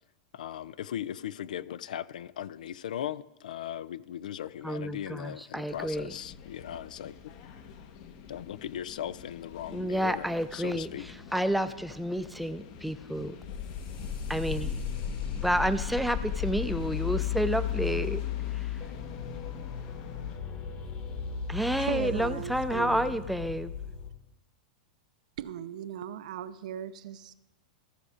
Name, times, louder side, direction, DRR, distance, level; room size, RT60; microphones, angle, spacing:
voice 1, 0.3-7.1 8.3-11.1, left 10 dB, 80° left, 0.3 m, -38 dB
voice 2, 4.6-6.1 9.7-10.9 11.3-13.4 14.3-14.8 15.4-18.2 18.5-18.7 21.5-23.7, equal, ahead, 0.4 m, -30 dB
sound 1, 5.7-20.4, left 7 dB, 55° left, 1.0 m, -47 dB
sound 2, 13.4-24.1, left 8 dB, 35° left, 1.4 m, -35 dB
voice 3, 21.8-23.2 25.4-27.3, right 10 dB, 70° right, 0.5 m, -38 dB
14.5 x 5.0 x 4.9 m
hypercardioid pair, 125°, 4 cm